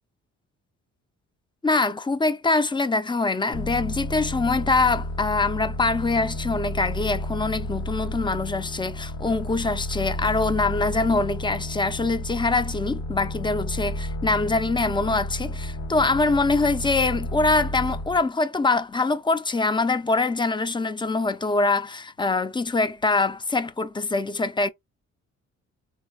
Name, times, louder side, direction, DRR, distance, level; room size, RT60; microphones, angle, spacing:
voice 1, 1.6-24.7, left 3 dB, 15° left, 0.5 m, -24 dB
sound 1, 3.5-18.2, left 1 dB, 65° left, 1.3 m, -32 dB
4.1 x 2.3 x 2.2 m
cardioid pair, 90°, 30 cm